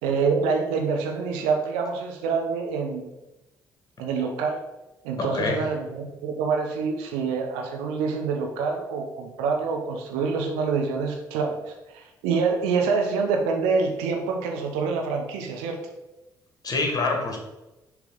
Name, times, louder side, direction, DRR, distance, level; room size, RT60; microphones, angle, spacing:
voice 1, 0.0-3.1 4.0-4.6 5.0-15.8, right 5 dB, 70° right, 2 dB, 0.9 m, -26 dB
voice 2, 5.2-5.7 16.6-17.4, left 3 dB, 35° left, 2 dB, 1.7 m, -26 dB
6.6 x 3.4 x 5.1 m, 1.0 s
figure-of-eight pair, 45°, 11 cm